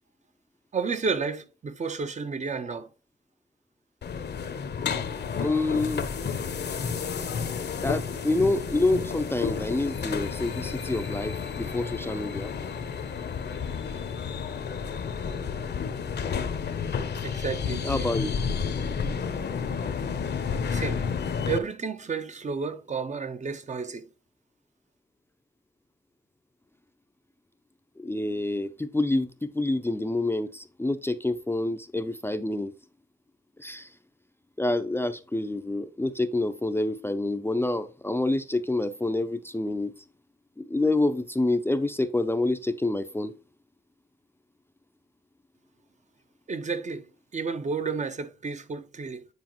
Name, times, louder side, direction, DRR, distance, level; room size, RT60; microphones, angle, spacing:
voice 1, 0.7-2.9 17.2-18.1 20.7-21.0 21.5-24.0 46.5-47.1 47.3-49.3, right 5 dB, 35° right, 0.6 m, -31 dB
sound 1, 4.0-21.6, left 6 dB, 55° left, 0.8 m, -31 dB
voice 2, 5.4-6.1 7.8-12.5 17.8-18.3 28.0-32.7 33.6-33.9 34.6-39.9 40.6-43.3, left 2 dB, 10° left, 0.5 m, -27 dB
9.4 x 4.7 x 3.0 m
cardioid pair, 105°, 20 cm